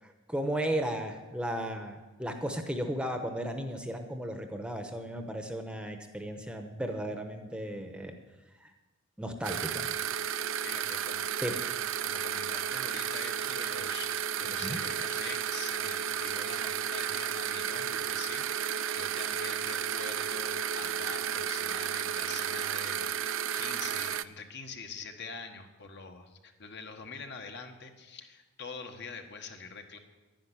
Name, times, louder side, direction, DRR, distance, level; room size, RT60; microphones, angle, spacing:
voice 1, 0.0-8.2 8.6-8.7 9.2-9.9 11.4-11.5 14.6-14.8, right 1 dB, 5° right, 5 dB, 1.0 m, -35 dB
sound 1, 9.4-24.2, right 9 dB, 60° right, 0.5 m, -33 dB
voice 2, 10.6-11.6 12.0-30.0, left 5 dB, 50° left, 5 dB, 1.4 m, -45 dB
11.5 x 10.5 x 10.0 m, 1.2 s
head